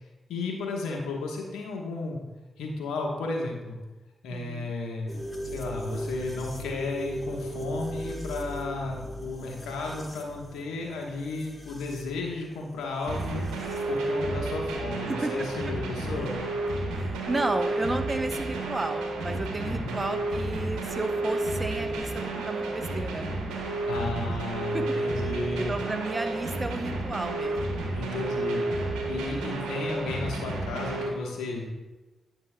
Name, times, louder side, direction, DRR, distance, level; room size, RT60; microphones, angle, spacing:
voice 1, 0.3-2.2 2.6-3.8 4.2-5.1 5.5-13.5 13.9-16.4 19.6-20.0 23.8-25.7 27.9-31.7, left 3 dB, 85° left, 0 dB, 1.1 m, -33 dB
voice 2, 4.3-4.7 15.1-15.3 16.1-16.3 16.9-23.3 24.3-24.4 24.7-25.0 25.6-27.9, right 2 dB, 30° right, 8 dB, 0.7 m, -33 dB
sound 1, 5.1-13.8, right 1 dB, 20° left, 1.4 m, -39 dB
sound 2, 13.1-31.1, right 2 dB, 90° right, 0.9 m, -31 dB
9.7 x 6.6 x 2.2 m, 1.2 s
supercardioid pair, 40°, 0 cm